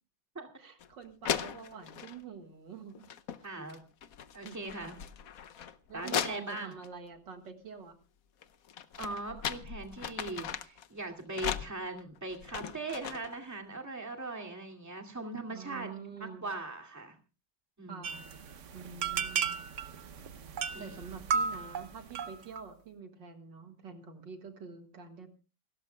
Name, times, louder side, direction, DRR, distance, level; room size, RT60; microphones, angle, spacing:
voice 1, 0.6-3.1 3.4-3.6 4.4-4.6 5.9-7.9 15.5-16.5 17.9-18.3 18.7-19.6 20.8-25.3, right 6 dB, 70° right, 6 dB, 2.4 m, -47 dB
sound 1, 0.8-0.9 1.2-2.2 2.9-3.4 3.7-6.9 8.4-10.9 11.3-13.4, left 8 dB, 55° left, 1.1 m, -38 dB
voice 2, 3.4-3.8 4.3-4.9 5.9-6.7 9.0-15.9 16.2-17.2 17.8-18.1 20.7-21.0, right 2 dB, 10° right, 2 dB, 2.2 m, -40 dB
sound 2, 18.0-22.6, right 6 dB, 50° right, 0.9 m, -35 dB
28.0 x 13.5 x 2.2 m, 0.31 s
omnidirectional pair, 2.1 m